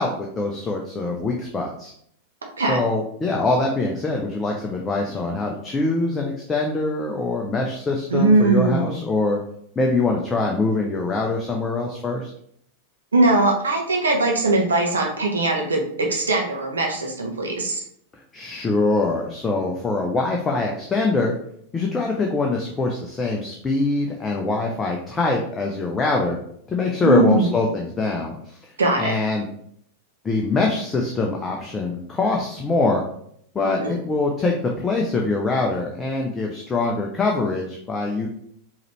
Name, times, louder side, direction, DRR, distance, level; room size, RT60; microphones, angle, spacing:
voice 1, 0.0-1.9 2.6-9.4 9.8-12.3 18.3-21.3 21.7-26.4 26.7-28.6 29.0-29.5 30.2-33.0 33.5-38.3, left 3 dB, 20° left, 0 dB, 0.6 m, -23 dB
voice 2, 8.1-9.0 13.1-17.8 27.0-27.5 28.8-29.1 33.8-33.9, right 2 dB, 70° right, 1 dB, 1.0 m, -20 dB
4.9 x 3.0 x 3.1 m, 0.67 s
figure-of-eight pair, 90°, 0 cm